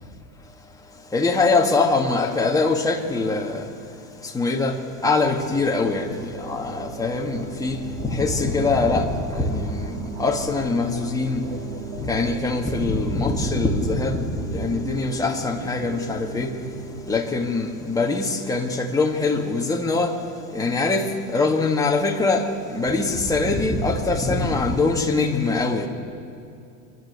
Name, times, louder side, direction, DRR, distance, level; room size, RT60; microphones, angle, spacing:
voice 1, 1.1-3.7 4.3-4.7 5.0-6.1 6.4-7.8 8.1-9.9 10.2-11.4 12.0-16.5 17.1-20.1 20.5-21.0 21.3-22.4 22.7-25.9, left 3 dB, 10° left, 0 dB, 2.0 m, -23 dB
sound 1, 4.8-17.2, right 4 dB, 45° right, 1.7 m, -36 dB
27.0 x 12.0 x 8.1 m, 2.6 s
supercardioid pair, 135°, 43 cm